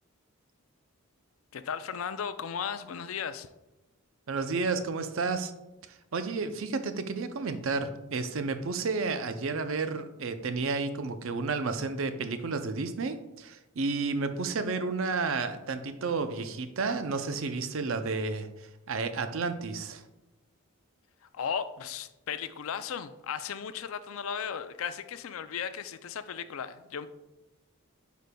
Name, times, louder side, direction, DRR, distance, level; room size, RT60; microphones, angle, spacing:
voice 1, 1.5-3.5 21.2-27.1, left 7 dB, 70° left, 12 dB, 0.4 m, -36 dB
voice 2, 4.3-5.5 5.9-20.0, right 4 dB, 65° right, 9 dB, 0.5 m, -31 dB
9.1 x 5.1 x 2.2 m, 0.98 s
head